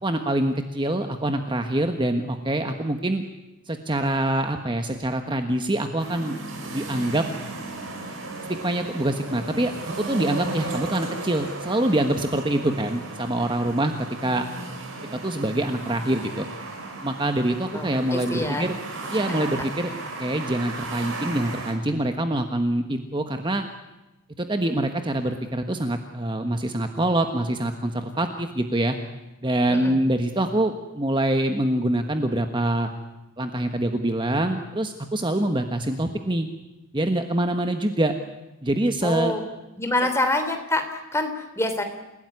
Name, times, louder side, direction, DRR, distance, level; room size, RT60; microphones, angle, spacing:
voice 1, 0.0-3.2 3.7-6.3 6.7-7.2 8.6-9.7 10.0-13.9 14.2-14.4 15.2-16.5 17.0-18.8 19.1-19.9 20.2-23.6 24.4-29.0 29.4-32.9 33.4-36.5 36.9-38.1 38.6-39.3, right 1 dB, 20° right, 6 dB, 1.3 m, -25 dB
sound 1, 6.0-21.7, right 2 dB, 60° right, 5.7 m, -35 dB
voice 2, 17.7-18.7 19.6-19.7 29.7-29.9 39.0-39.4 39.8-41.8, left 2 dB, 10° left, 6 dB, 3.1 m, -26 dB
28.5 x 17.5 x 9.7 m, 1.0 s
head